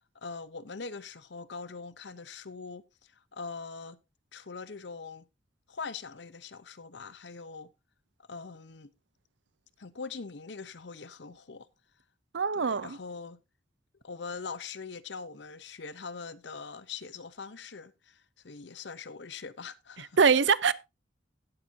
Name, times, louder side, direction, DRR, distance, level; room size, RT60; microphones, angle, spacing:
voice 1, 0.1-2.8 3.3-4.0 4.3-5.3 5.7-7.7 8.3-8.9 9.8-11.7 12.5-13.4 14.0-20.2, left 4 dB, 65° left, 0.8 m, -42 dB
voice 2, 12.3-13.0 20.2-20.7, right 5 dB, 70° right, 0.6 m, -23 dB
16.5 x 7.5 x 2.7 m
head